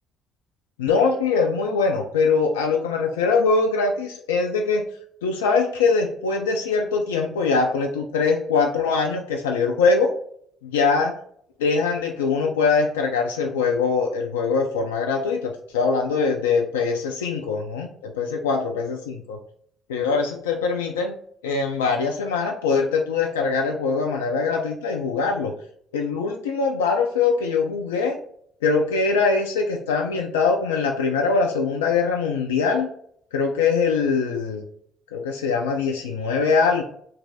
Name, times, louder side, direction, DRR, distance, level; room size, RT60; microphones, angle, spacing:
voice 1, 0.8-4.8 5.2-10.1 10.6-11.1 11.6-19.4 19.9-21.1 21.4-25.5 25.9-28.2 28.6-32.9 33.3-34.6 35.1-36.8, left 4 dB, 80° left, 3 dB, 0.3 m, -22 dB
3.1 x 2.5 x 3.8 m, 0.65 s
figure-of-eight pair, 50°, 0 cm